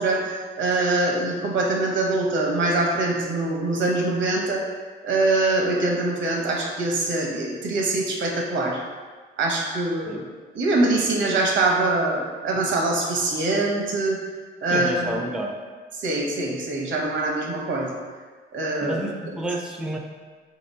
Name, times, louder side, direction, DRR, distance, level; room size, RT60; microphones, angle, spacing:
voice 1, 0.0-4.6 5.0-8.8 9.4-10.2 10.5-14.2 14.6-15.1 16.0-17.9 18.5-19.0, right 2 dB, 70° right, -1 dB, 0.9 m, -23 dB
voice 2, 14.7-15.5 18.8-20.0, right 1 dB, 5° right, 1 dB, 0.4 m, -30 dB
3.1 x 2.9 x 4.1 m, 1.5 s
cardioid pair, 90°, 20 cm